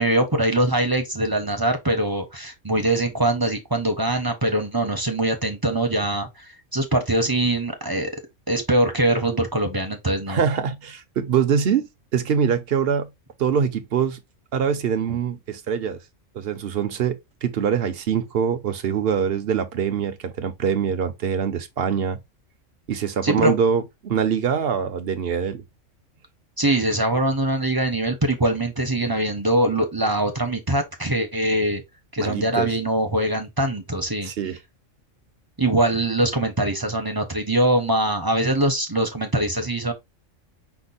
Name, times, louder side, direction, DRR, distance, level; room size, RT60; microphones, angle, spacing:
voice 1, 0.0-8.1 8.5-10.4 23.2-23.5 26.6-31.8 32.1-34.3 35.6-39.9, right 1 dB, 20° right, 0.8 m, -22 dB
voice 2, 10.3-13.1 13.4-14.2 14.5-16.0 16.3-22.2 22.9-25.6 32.2-32.7 34.2-34.6, right 7 dB, 55° right, 0.8 m, -24 dB
5.8 x 2.1 x 4.0 m
omnidirectional pair, 1.3 m